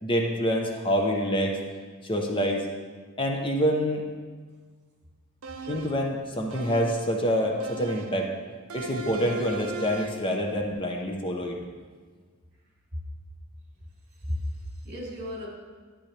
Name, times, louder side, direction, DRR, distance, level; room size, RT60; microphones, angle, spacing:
voice 1, 0.0-1.6 2.0-2.7 3.2-4.0 5.7-8.3 8.7-11.6, equal, 25° left, 1 dB, 0.9 m, -26 dB
sound 1, 5.4-6.1 6.5-7.2 7.6-8.3 8.7-10.3, right 3 dB, 85° right, 0.7 m, -38 dB
voice 2, 14.2-15.5, left 1 dB, 55° right, -3 dB, 2.6 m, -34 dB
12.0 x 8.7 x 3.4 m, 1.5 s
head